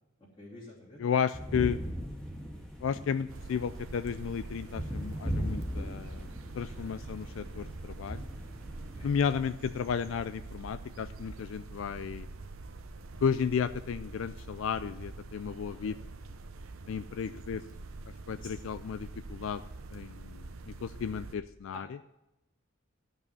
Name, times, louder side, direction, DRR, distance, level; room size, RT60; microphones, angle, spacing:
voice 1, 0.4-1.0 6.7-7.0 9.0-9.1 15.7-15.9 18.4-18.5 21.7-21.8, left 1 dB, 25° left, -8 dB, 2.8 m, -48 dB
voice 2, 1.0-1.8 2.8-6.3 6.6-8.2 9.0-12.3 13.2-16.0 16.9-17.6 18.3-19.6 19.9-22.0, left 7 dB, 70° left, 13 dB, 0.3 m, -33 dB
sound 1, 1.3-9.1, equal, 5° left, 1.6 m, -39 dB
sound 2, 3.3-21.3, right 3 dB, 85° right, 0.8 m, -45 dB
12.5 x 5.5 x 7.0 m, 0.96 s
head